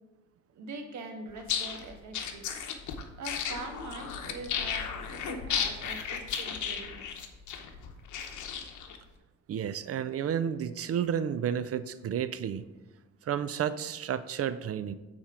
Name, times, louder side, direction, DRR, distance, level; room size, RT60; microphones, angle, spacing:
voice 1, 0.5-2.4 3.2-7.1, right 3 dB, 70° right, 4 dB, 1.4 m, -43 dB
sound 1, 1.4-9.0, left 7 dB, 75° left, 1.0 m, -34 dB
voice 2, 9.5-12.6 13.3-14.9, right 9 dB, 50° right, 14 dB, 0.5 m, -31 dB
8.6 x 4.4 x 4.9 m, 1.2 s
cardioid pair, 90°, 30 cm